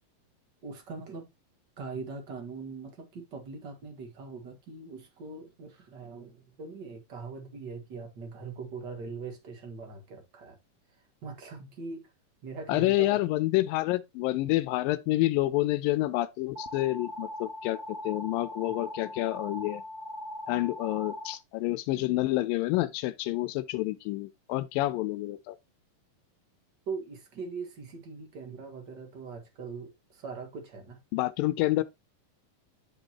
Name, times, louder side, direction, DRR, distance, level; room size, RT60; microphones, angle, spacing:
voice 1, 0.6-1.3 1.8-10.6 11.2-12.0 12.4-13.2 18.7-18.8 26.9-31.0, right 4 dB, 40° right, 1.7 m, -41 dB
voice 2, 12.7-19.8 20.5-25.6 31.1-31.8, left 17 dB, 85° left, 2.3 m, -28 dB
sound 1, 16.5-21.3, left 1 dB, 85° right, 0.4 m, -40 dB
10.0 x 5.3 x 2.9 m
omnidirectional pair, 4.0 m